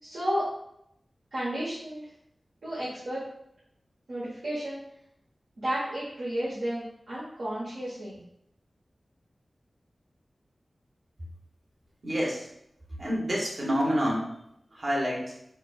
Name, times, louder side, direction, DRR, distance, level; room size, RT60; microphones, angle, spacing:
voice 1, 0.0-0.5 1.3-2.1 2.6-3.2 4.1-4.8 5.6-8.2, equal, 85° right, -10 dB, 1.1 m, -32 dB
voice 2, 12.0-12.5 13.0-14.3 14.7-15.3, equal, 50° right, -4 dB, 1.1 m, -28 dB
4.7 x 2.2 x 2.4 m, 0.77 s
wide cardioid pair, 65°, 0 cm